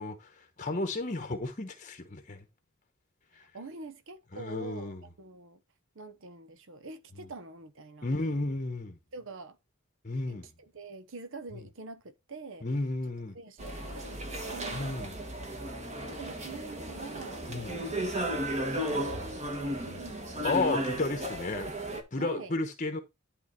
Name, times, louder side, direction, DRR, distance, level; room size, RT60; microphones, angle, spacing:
voice 1, 0.0-2.4 3.3-3.5 4.3-5.0 8.0-9.0 10.0-10.5 12.6-13.4 14.7-15.2 17.5-17.8 20.4-21.7 22.1-23.0, left 2 dB, 35° left, 1.0 m, -33 dB
voice 2, 3.4-5.6 5.9-8.1 9.1-9.6 10.3-12.7 13.3-15.0 16.2-18.1 18.8-20.3 22.2-22.5, right 3 dB, 65° right, 1.0 m, -45 dB
sound 1, 13.6-22.0, right 1 dB, 30° right, 1.7 m, -35 dB
11.0 x 3.8 x 4.4 m
head